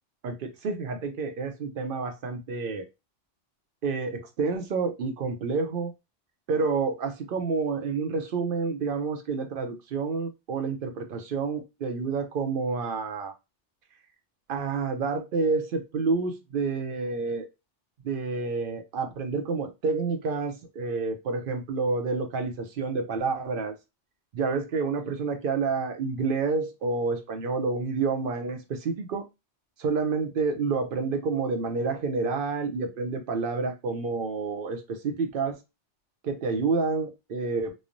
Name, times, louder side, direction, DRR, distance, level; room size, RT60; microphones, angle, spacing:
voice 1, 0.2-2.9 3.8-5.9 6.5-13.3 14.5-17.5 18.0-23.7 24.3-29.2 29.8-35.6 36.2-37.7, right 4 dB, 60° right, 0.6 m, -29 dB
3.1 x 2.0 x 2.5 m
omnidirectional pair, 1.2 m